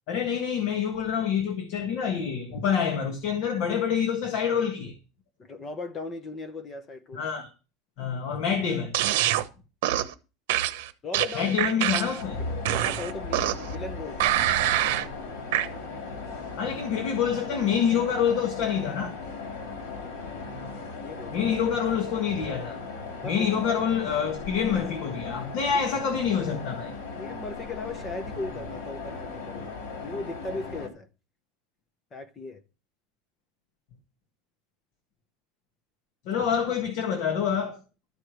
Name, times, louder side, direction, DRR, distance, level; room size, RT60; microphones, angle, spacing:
voice 1, 0.1-4.9 7.1-7.5 8.0-9.0 11.3-12.4 16.6-19.2 21.3-22.8 23.2-26.9 36.2-37.8, left 7 dB, 45° left, 1.6 m, -27 dB
voice 2, 5.4-7.2 11.0-11.6 12.5-14.6 19.9-20.5 21.0-21.3 23.2-23.8 27.1-29.7 30.0-31.1 32.1-32.6 36.3-36.5, left 3 dB, 15° left, 0.8 m, -38 dB
sound 1, 8.9-9.4 9.8-10.1 10.5-12.2 12.6-13.7 14.2-15.1 15.5-15.7, right 13 dB, 75° right, 0.9 m, -25 dB
sound 2, 12.2-30.9, left 4 dB, 75° left, 3.4 m, -37 dB
13.0 x 4.9 x 6.2 m
cardioid pair, 180°, 0 cm